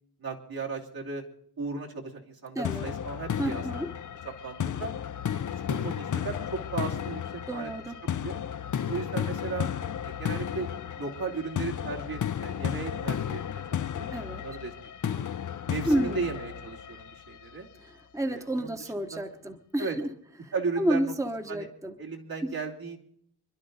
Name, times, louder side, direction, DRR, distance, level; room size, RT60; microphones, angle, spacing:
voice 1, 0.2-1.2 1.6-3.6 4.4-4.9 5.3-7.2 7.5-7.7 8.0-8.4 8.9-9.7 10.0-10.7 11.0-14.7 15.0-15.3 15.7-17.7 18.3-18.8 19.1-19.2 19.8-19.9 20.5-21.1 21.5-21.7 22.0-23.0, right 4 dB, 65° right, -1 dB, 3.1 m, -36 dB
voice 2, 2.5-2.9 3.4-3.9 7.5-8.0 14.1-14.4 15.9-16.3 17.8-20.1 20.4-21.9 22.4-22.5, right 1 dB, 10° right, 6 dB, 1.1 m, -30 dB
sound 1, 2.6-17.6, left 9 dB, 50° left, 0.6 m, -33 dB
26.0 x 11.5 x 4.0 m, 0.67 s
wide cardioid pair, 85°, 38 cm